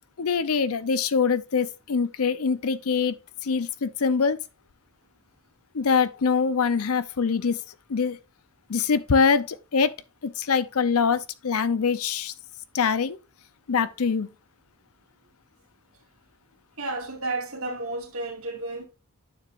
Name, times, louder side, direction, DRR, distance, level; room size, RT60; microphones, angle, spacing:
voice 1, 0.2-3.2 3.4-4.4 5.7-7.6 7.9-8.2 8.7-9.9 10.2-12.3 12.7-13.2 13.7-14.3, left 5 dB, 75° left, 0.6 m, -24 dB
voice 2, 16.8-18.9, right 2 dB, 70° right, 2.3 m, -32 dB
9.1 x 6.8 x 2.5 m
head